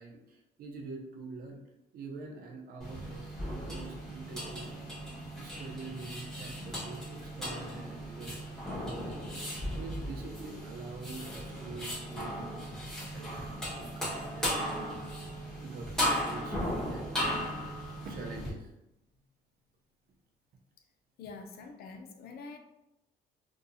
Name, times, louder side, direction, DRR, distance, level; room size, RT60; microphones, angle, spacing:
voice 1, 0.0-1.6 1.9-4.9 5.4-9.4 9.8-14.9 15.6-17.1 18.0-18.7, right 3 dB, 60° right, 2 dB, 0.6 m, -45 dB
sound 1, 2.8-18.5, equal, 5° left, 1.2 m, -36 dB
voice 2, 21.2-22.6, left 4 dB, 65° left, 5 dB, 0.5 m, -46 dB
2.8 x 2.3 x 2.6 m, 0.88 s
cardioid pair, 110°, 17 cm